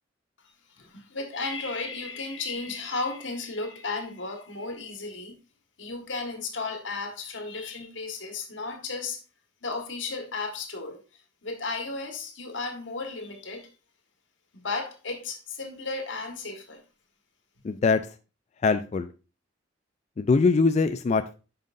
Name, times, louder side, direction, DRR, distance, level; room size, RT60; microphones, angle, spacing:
voice 1, 0.8-5.4 5.8-9.2 9.6-11.0 11.4-13.7 14.5-16.8, left 3 dB, 90° left, 1.6 m, -34 dB
voice 2, 17.6-18.0 18.6-19.1 20.2-21.4, left 4 dB, 35° left, 0.3 m, -22 dB
9.0 x 5.7 x 2.6 m
head